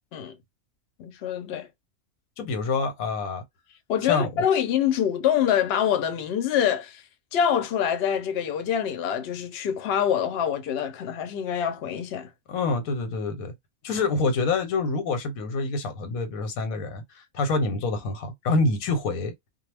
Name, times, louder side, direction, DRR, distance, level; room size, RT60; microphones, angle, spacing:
voice 1, 1.0-1.7 3.9-7.0 7.3-12.3, left 9 dB, 60° left, 0.7 m, -25 dB
voice 2, 2.4-3.4 4.0-4.4 12.5-13.5 13.8-19.3, left 3 dB, 90° left, 1.2 m, -26 dB
2.3 x 2.0 x 3.2 m
omnidirectional pair, 1.4 m